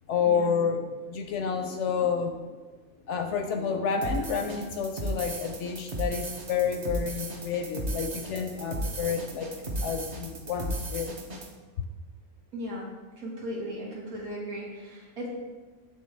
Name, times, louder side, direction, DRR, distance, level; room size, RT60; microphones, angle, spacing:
voice 1, 0.1-2.3 3.1-11.1, left 6 dB, 65° left, 5 dB, 0.8 m, -29 dB
sound 1, 4.0-11.5, right 1 dB, 40° right, 0.7 m, -35 dB
voice 2, 12.5-12.9 13.2-15.3, equal, 85° right, -3 dB, 1.9 m, -37 dB
8.5 x 3.7 x 3.3 m, 1.3 s
omnidirectional pair, 1.5 m